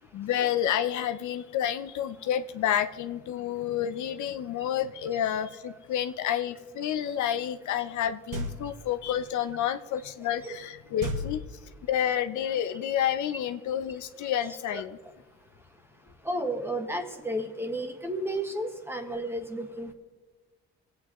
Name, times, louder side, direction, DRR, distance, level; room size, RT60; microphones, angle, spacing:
voice 1, 0.1-15.0, left 10 dB, 75° left, 10 dB, 0.7 m, -29 dB
sound 1, 8.3-9.0 11.0-12.0, equal, 80° right, 1.5 m, -35 dB
voice 2, 16.2-19.9, right 1 dB, 10° right, 4 dB, 1.7 m, -32 dB
25.5 x 8.5 x 3.0 m, 1.3 s
cardioid pair, 90°, 30 cm